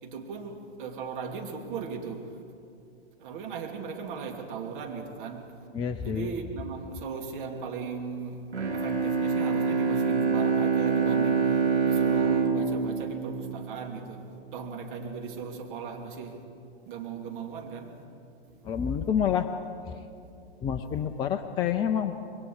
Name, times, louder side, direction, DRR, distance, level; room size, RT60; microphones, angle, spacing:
voice 1, 0.0-2.4 3.2-5.6 6.0-8.4 8.7-14.2 14.5-16.4 16.9-17.9 18.5-18.8 20.9-21.0, right 5 dB, 50° right, 2 dB, 3.0 m, -37 dB
voice 2, 5.7-6.3 18.6-19.5 19.9-20.1 20.6-22.2, left 8 dB, 15° left, 7 dB, 0.5 m, -28 dB
Bowed string instrument, 8.5-14.1, right 5 dB, 85° right, 2.6 m, -26 dB
27.0 x 22.5 x 4.9 m, 2.6 s
figure-of-eight pair, 115°, 33 cm